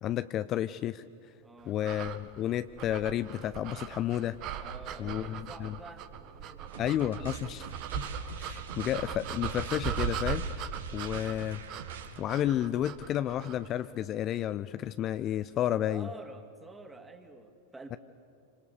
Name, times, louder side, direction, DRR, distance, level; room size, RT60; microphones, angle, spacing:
voice 1, 0.0-1.0 1.7-4.4 5.0-5.8 6.8-8.1 8.4-10.5 10.9-11.6 12.2-16.1, left 11 dB, 30° left, 13 dB, 0.5 m, -31 dB
voice 2, 1.4-1.8 4.6-7.2 15.9-18.0, right 2 dB, 10° right, 6 dB, 2.7 m, -49 dB
sound 1, 1.8-13.7, right 8 dB, 40° right, 1.7 m, -39 dB
sound 2, 6.7-12.2, right 7 dB, 65° right, 2.4 m, -45 dB
27.0 x 26.0 x 7.1 m, 2.5 s
figure-of-eight pair, 90°, 0 cm